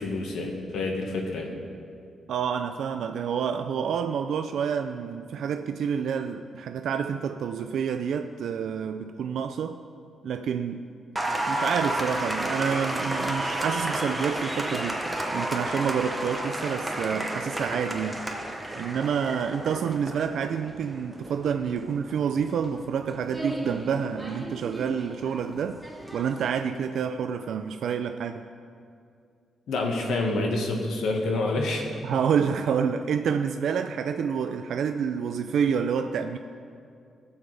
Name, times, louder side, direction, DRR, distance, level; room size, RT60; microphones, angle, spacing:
voice 1, 0.0-1.5 29.7-31.8, left 2 dB, 90° left, 1 dB, 1.5 m, -28 dB
voice 2, 2.3-9.8 10.2-10.8 11.5-15.0 15.3-18.2 18.8-25.8 26.1-28.4 32.0-36.4, right 7 dB, 65° right, 8 dB, 0.4 m, -28 dB
Applause, 11.2-26.5, right 1 dB, 5° right, 0.8 m, -32 dB
18.5 x 7.0 x 3.4 m, 2.3 s
wide cardioid pair, 175°, 0 cm